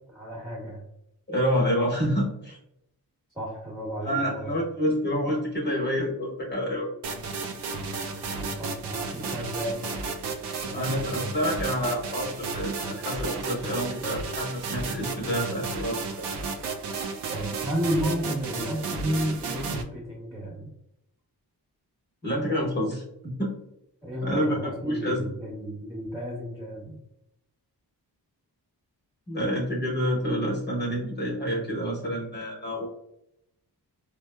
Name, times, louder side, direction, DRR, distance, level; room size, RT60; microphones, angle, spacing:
voice 1, 0.1-0.8 3.3-4.5 8.1-9.8 10.6-11.2 17.3-20.7 24.0-27.0, equal, 5° right, -5 dB, 1.1 m, -32 dB
voice 2, 1.3-2.6 4.0-6.9 10.7-16.0 22.2-23.5 24.2-24.6 24.8-25.2 29.3-32.9, equal, 25° left, -4 dB, 1.0 m, -28 dB
sound 1, 7.0-19.8, right 4 dB, 80° right, 0.5 m, -33 dB
4.5 x 2.0 x 2.2 m, 0.80 s
cardioid pair, 60°, 40 cm